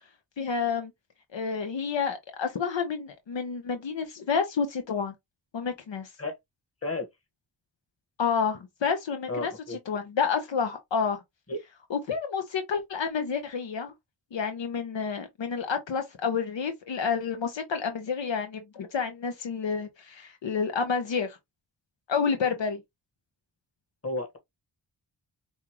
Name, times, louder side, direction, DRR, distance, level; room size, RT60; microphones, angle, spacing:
voice 1, 0.4-0.9 1.3-5.1 5.5-6.1 8.2-11.2 11.9-13.9 14.3-21.4 22.1-22.8, left 6 dB, 75° left, 0.9 m, -29 dB
voice 2, 9.3-9.8 11.5-11.6 24.0-24.4, left 2 dB, 30° left, 1.6 m, -32 dB
5.3 x 2.4 x 3.1 m
cardioid pair, 45°, 44 cm